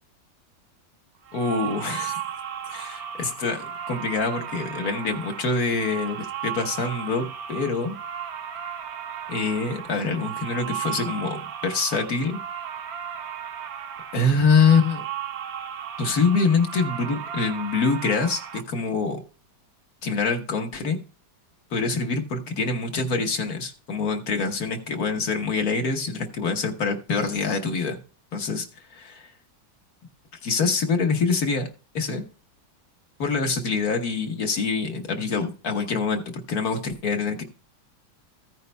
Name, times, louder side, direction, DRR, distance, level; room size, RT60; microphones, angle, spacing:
sound 1, 1.2-18.6, right 9 dB, 60° right, 1.2 m, -35 dB
voice 1, 1.3-2.2 2.7-8.0 9.3-12.4 14.1-15.0 16.0-19.2 20.0-21.0 21.7-28.0 28.3-28.7 28.9-29.3 30.4-31.7 31.9-32.2 33.2-37.4, left 4 dB, 60° left, 5 dB, 1.6 m, -25 dB
15.0 x 9.5 x 2.2 m, 0.34 s
omnidirectional pair, 1.9 m